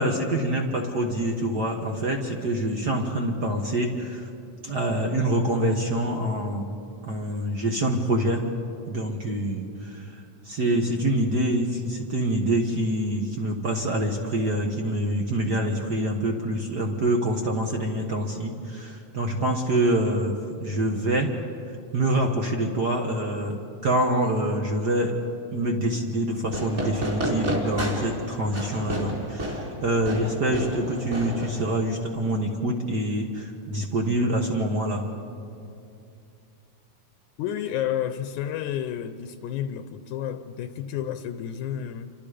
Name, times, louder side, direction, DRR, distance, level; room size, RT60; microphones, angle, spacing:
voice 1, 0.0-4.3 4.6-6.7 7.0-8.4 8.9-21.3 21.9-25.2 25.5-35.1, right 1 dB, 45° right, 2 dB, 1.4 m, -26 dB
Fireworks, 26.5-32.0, equal, 25° right, 3.5 m, -31 dB
voice 2, 37.4-42.1, left 10 dB, 80° left, 9 dB, 2.2 m, -31 dB
28.5 x 25.0 x 5.1 m, 2.6 s
omnidirectional pair, 3.5 m